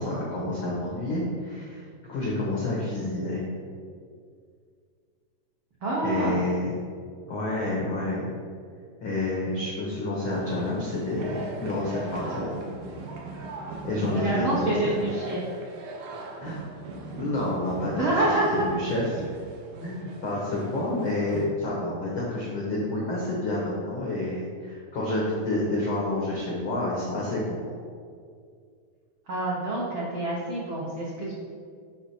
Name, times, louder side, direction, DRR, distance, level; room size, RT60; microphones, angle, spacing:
voice 1, 0.0-3.5 6.0-6.8 7.3-8.3 9.0-12.6 13.8-14.9 16.4-16.6 16.9-18.1 18.5-19.3 19.8-27.6, left 2 dB, 85° left, -4 dB, 1.1 m, -29 dB
voice 2, 5.8-6.4 14.1-15.4 17.9-18.6 29.3-31.3, right 2 dB, 90° right, -6 dB, 1.1 m, -27 dB
sound 1, 10.3-21.5, right 3 dB, 70° right, 2.0 m, -39 dB
6.6 x 5.6 x 4.3 m, 2.2 s
omnidirectional pair, 3.9 m